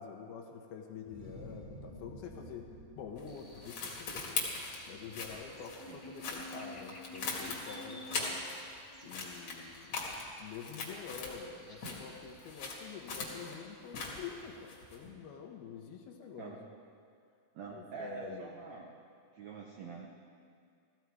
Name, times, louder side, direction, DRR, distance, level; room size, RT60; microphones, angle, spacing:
voice 1, 0.0-2.7 3.0-4.4 4.9-8.4 9.0-10.0 10.4-16.6 17.7-18.5, left 6 dB, 75° left, 2 dB, 2.9 m, -47 dB
sound 1, 1.0-6.5, equal, 40° right, 2.4 m, -53 dB
sound 2, 3.2-8.8 9.1-11.5 11.8-15.1, left 4 dB, 45° left, 2.6 m, -41 dB
Buzz, 3.3-13.3, equal, 5° left, 2.1 m, -53 dB
voice 2, 17.5-18.9 19.3-20.1, right 5 dB, 80° right, -1 dB, 1.6 m, -45 dB
15.5 x 14.5 x 4.7 m, 2.3 s
omnidirectional pair, 4.7 m